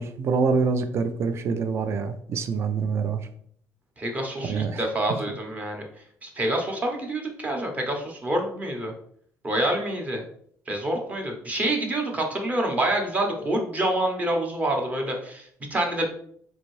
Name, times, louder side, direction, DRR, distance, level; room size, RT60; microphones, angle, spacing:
voice 1, 0.0-3.3 4.4-4.8 5.1-5.2, right 5 dB, 45° right, 9 dB, 0.4 m, -26 dB
voice 2, 4.0-5.8 6.2-8.9 9.4-10.2 10.7-16.1, right 1 dB, 25° right, 2 dB, 0.8 m, -27 dB
3.9 x 2.6 x 3.1 m, 0.63 s
cardioid pair, 140°, 6 cm